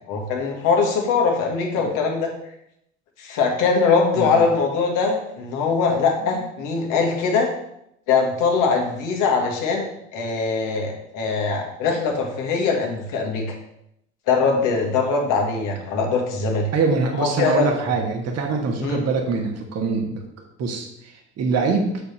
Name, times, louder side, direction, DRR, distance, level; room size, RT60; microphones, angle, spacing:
voice 1, 0.1-2.3 3.2-7.5 8.1-13.4 14.3-16.7 17.2-17.7 18.8-19.0, left 4 dB, 60° left, 1 dB, 1.8 m, -22 dB
voice 2, 16.7-20.2 20.6-21.9, right 4 dB, 45° right, 2 dB, 1.4 m, -24 dB
6.7 x 5.2 x 4.3 m, 0.78 s
hypercardioid pair, 65°, 35 cm